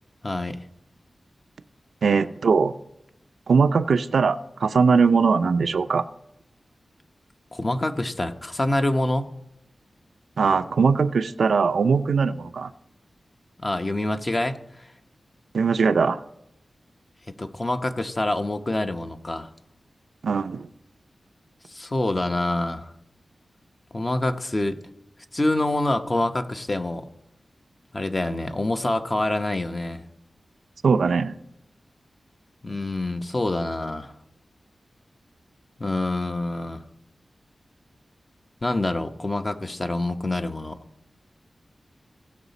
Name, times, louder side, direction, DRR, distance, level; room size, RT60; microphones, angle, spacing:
voice 1, 0.2-0.6 7.5-9.3 13.6-14.9 17.4-19.5 21.7-22.9 23.9-24.8 25.3-27.1 27.9-30.0 32.6-34.1 35.8-36.8 38.6-40.8, left 2 dB, 35° left, 7 dB, 0.9 m, -26 dB
voice 2, 2.0-2.7 3.5-6.0 10.4-12.7 15.5-16.2 20.2-20.7 30.8-31.4, right 5 dB, 85° right, 11 dB, 0.4 m, -20 dB
17.0 x 5.7 x 4.1 m, 0.83 s
cardioid pair, 50°, 0 cm